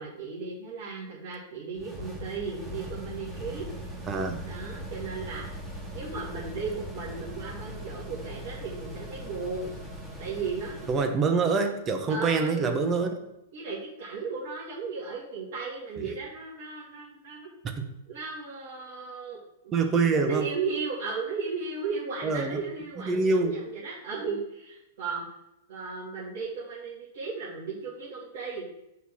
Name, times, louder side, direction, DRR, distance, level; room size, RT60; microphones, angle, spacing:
voice 1, 0.0-3.7 4.4-5.6 5.9-9.7 10.2-11.1 12.1-12.7 13.5-17.5 18.1-19.7 20.3-25.3 25.7-28.7, right 4 dB, 50° right, -8 dB, 2.1 m, -35 dB
sound 1, 1.7-11.1, equal, 5° right, 2.0 m, -40 dB
voice 2, 4.1-4.4 10.9-13.1 16.0-16.1 17.8-17.9 19.7-20.5 22.2-22.6 23.0-23.6, right 4 dB, 25° right, 5 dB, 1.1 m, -25 dB
5.8 x 3.9 x 6.1 m, 0.88 s
figure-of-eight pair, 100°, 0 cm